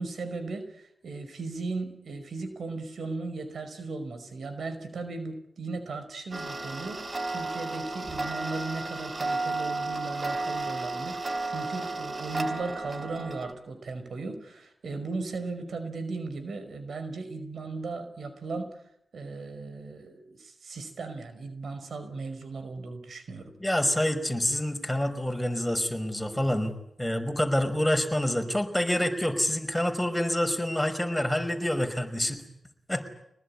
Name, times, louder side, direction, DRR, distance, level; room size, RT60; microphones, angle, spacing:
voice 1, 0.0-18.8 19.1-23.5, right 3 dB, 70° right, 9 dB, 5.2 m, -37 dB
Tick-tock, 6.3-13.5, right 3 dB, 40° right, 3.4 m, -33 dB
voice 2, 23.6-26.7 27.0-32.4 32.9-33.0, left 1 dB, 10° left, 7 dB, 5.5 m, -27 dB
25.0 x 20.0 x 9.9 m, 0.77 s
cardioid pair, 50°, 0 cm